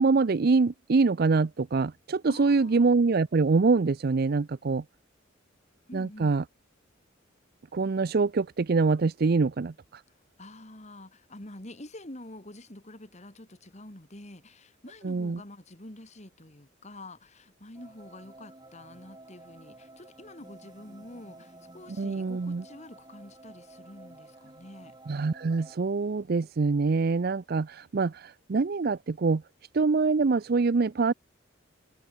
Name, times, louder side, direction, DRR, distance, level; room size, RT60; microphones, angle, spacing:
voice 1, 0.0-4.8 5.9-6.4 7.7-10.0 15.0-15.4 22.0-22.6 25.1-29.4 29.7-31.1, right 4 dB, 50° right, 0.5 m, -25 dB
voice 2, 2.3-2.8 5.9-6.4 10.4-24.9, left 1 dB, 35° left, 2.8 m, -47 dB
sound 1, 17.7-25.7, right 2 dB, 20° right, 2.4 m, -52 dB
head